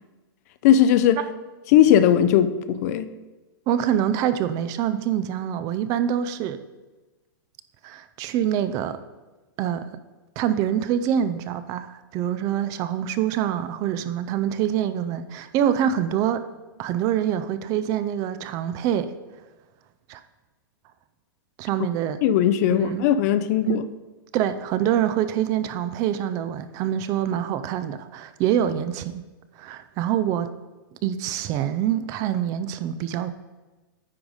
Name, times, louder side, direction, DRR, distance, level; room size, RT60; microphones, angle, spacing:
voice 1, 0.6-1.2 1.7-3.1 22.2-23.8, left 10 dB, 45° left, 12 dB, 0.5 m, -18 dB
voice 2, 3.7-6.6 7.8-9.0 9.6-9.9 10.4-16.5 16.8-19.1 20.1-20.2 21.6-22.2 22.7-23.1 23.7-23.8 24.3-29.2 29.6-30.5 31.0-33.4, right 10 dB, 30° right, 12 dB, 0.4 m, -25 dB
9.5 x 4.0 x 5.0 m, 1.2 s
hypercardioid pair, 145°, 12 cm